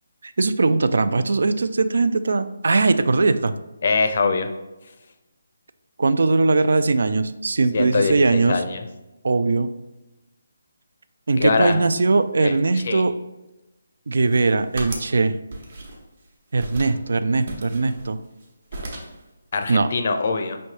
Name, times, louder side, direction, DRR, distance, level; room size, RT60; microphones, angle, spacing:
voice 1, 0.2-3.5 6.0-8.6 9.2-9.7 11.3-13.1 14.1-15.3 16.5-18.2 19.7-19.9, right 3 dB, 70° right, 12 dB, 0.3 m, -20 dB
voice 2, 3.8-4.5 7.7-8.9 11.3-11.8 12.4-13.0 19.5-20.6, left 4 dB, 50° left, 7 dB, 0.5 m, -23 dB
sound 1, 14.1-15.2 15.5-16.2 16.6-17.0 17.5-18.5 18.7-19.2, right 2 dB, 50° right, 1.0 m, -36 dB
5.3 x 3.2 x 2.8 m, 1.0 s
figure-of-eight pair, 155°, 0 cm